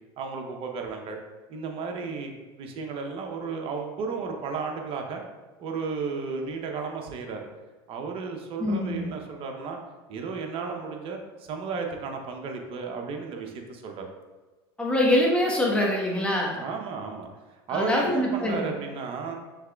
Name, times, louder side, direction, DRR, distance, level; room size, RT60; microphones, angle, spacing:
voice 1, 0.2-1.2 1.5-5.2 5.6-7.5 7.9-9.8 10.1-14.1 16.6-19.4, right 5 dB, 45° right, 3 dB, 0.8 m, -33 dB
voice 2, 8.6-9.1 14.8-16.6 17.7-18.7, left 1 dB, 10° left, -2 dB, 1.1 m, -24 dB
5.8 x 3.2 x 2.3 m, 1.3 s
hypercardioid pair, 95°, 13 cm